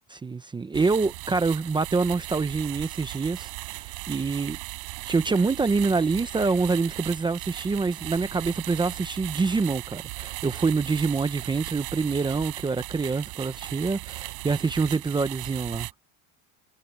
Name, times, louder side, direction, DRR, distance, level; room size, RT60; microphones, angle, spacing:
voice 1, 0.1-4.6 5.1-15.9, right 4 dB, 10° right, 0.7 m, -26 dB
sound 1, 0.7-15.9, right 40 dB or more, 85° right, 7.1 m, -37 dB
cardioid pair, 155°, 39 cm